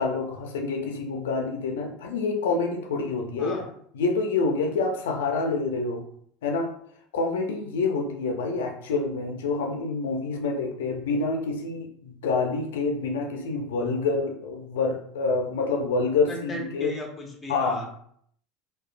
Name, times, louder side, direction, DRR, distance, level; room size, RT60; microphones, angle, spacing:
voice 1, 0.0-3.7 3.9-6.0 6.4-6.7 7.1-16.9 17.5-17.8, left 3 dB, 90° left, 2 dB, 0.5 m, -27 dB
voice 2, 16.3-17.9, left 2 dB, 15° left, 0 dB, 0.7 m, -36 dB
2.8 x 2.2 x 2.4 m, 0.65 s
supercardioid pair, 100°, 0 cm